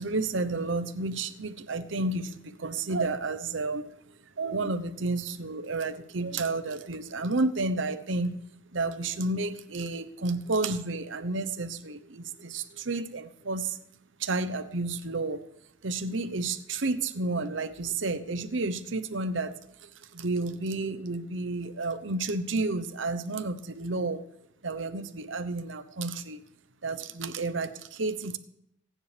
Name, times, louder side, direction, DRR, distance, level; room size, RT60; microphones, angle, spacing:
voice 1, 0.0-3.9 4.4-8.4 8.7-13.8 14.2-15.4 15.8-19.5 19.8-24.2 24.6-26.4 26.8-28.4, right 3 dB, 75° right, 12 dB, 0.9 m, -31 dB
25.0 x 10.0 x 3.4 m, 0.75 s
head